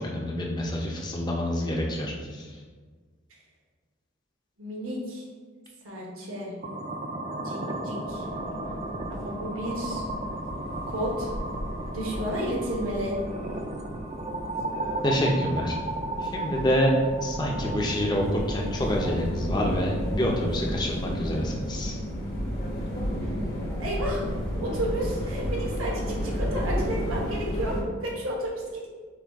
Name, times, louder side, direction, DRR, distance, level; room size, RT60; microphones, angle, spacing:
voice 1, 0.0-2.5 15.0-15.8 16.2-16.9 17.2-22.0, equal, 20° left, -1 dB, 0.5 m, -27 dB
voice 2, 4.6-5.2 5.8-6.5 7.4-8.2 9.1-10.0 10.9-11.3 11.9-13.2 23.8-24.3 24.6-28.9, equal, 80° right, -2 dB, 1.1 m, -32 dB
sound 1, 6.6-20.6, right 2 dB, 35° right, 0.4 m, -35 dB
sound 2, 8.0-27.8, equal, 50° left, 0.9 m, -33 dB
5.9 x 2.3 x 3.5 m, 1.5 s
head